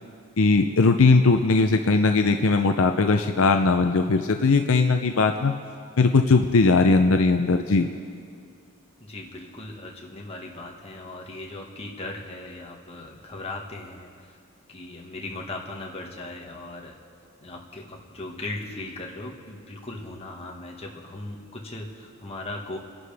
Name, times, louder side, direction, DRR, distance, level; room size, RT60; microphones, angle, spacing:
voice 1, 0.4-5.5 6.0-7.9, left 3 dB, 65° left, 6 dB, 0.6 m, -19 dB
voice 2, 9.0-14.4 14.7-17.0 17.4-22.8, left 2 dB, 25° left, -1 dB, 1.7 m, -38 dB
27.5 x 11.0 x 3.5 m, 2.3 s
head